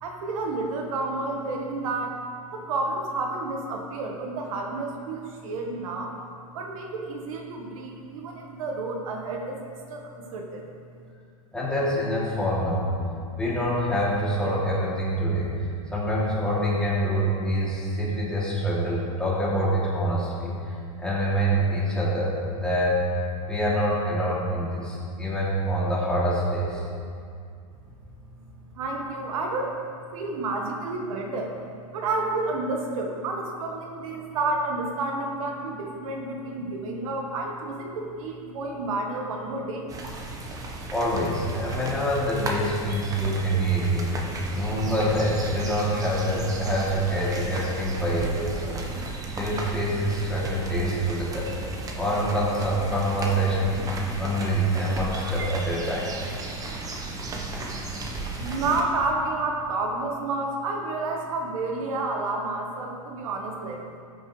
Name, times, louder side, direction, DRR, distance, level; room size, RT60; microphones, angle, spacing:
voice 1, 0.0-2.2 2.5-6.1 6.5-9.6 9.9-10.6 28.7-29.8 30.1-39.9 58.4-63.8, right 3 dB, 70° right, 1 dB, 1.6 m, -30 dB
voice 2, 11.5-12.9 13.4-15.6 15.9-23.0 23.5-26.8 40.9-44.1 44.5-48.8 49.0-51.5 51.9-56.1, equal, 5° left, -8 dB, 3.0 m, -26 dB
sound 1, 39.9-58.8, right 2 dB, 20° right, 1.2 m, -34 dB
14.0 x 9.1 x 3.4 m, 2.4 s
supercardioid pair, 140°, 18 cm